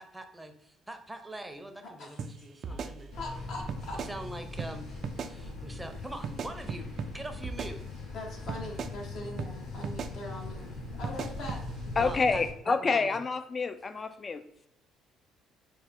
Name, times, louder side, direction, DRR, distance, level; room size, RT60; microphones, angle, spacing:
voice 1, 0.0-3.1 4.1-8.1 11.9-13.2, right 1 dB, 10° right, 6 dB, 0.6 m, -43 dB
voice 2, 1.8-2.2 2.7-2.8 3.2-4.0 8.1-11.6, left 2 dB, 70° left, -1 dB, 1.0 m, -41 dB
sound 1, 2.2-2.3 2.6-3.4 3.7-4.1 4.6-4.7 5.0-5.3 6.2-7.1 7.4-8.2 8.5-8.9 9.4-9.5 9.8-10.1 11.0-11.6, right 5 dB, 55° right, 0.3 m, -37 dB
sound 2, 3.1-12.5, left 2 dB, 90° left, 1.3 m, -41 dB
voice 3, 12.0-14.4, left 4 dB, 35° left, 11 dB, 0.3 m, -28 dB
3.6 x 2.2 x 3.5 m, 0.79 s
supercardioid pair, 65°, 0 cm